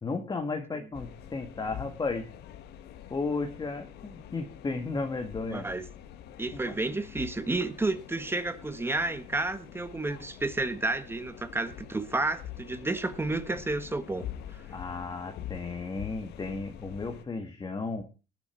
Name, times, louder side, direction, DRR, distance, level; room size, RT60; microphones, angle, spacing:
voice 1, 0.0-2.3 3.1-5.7 6.5-6.8 14.7-18.0, left 3 dB, 25° left, 5 dB, 1.8 m, -34 dB
sound 1, 0.9-17.2, left 11 dB, 80° left, 1.6 m, -45 dB
voice 2, 5.5-5.8 6.4-14.3, right 2 dB, 15° right, 10 dB, 1.5 m, -31 dB
19.5 x 7.1 x 4.5 m, 0.34 s
cardioid pair, 110°, 17 cm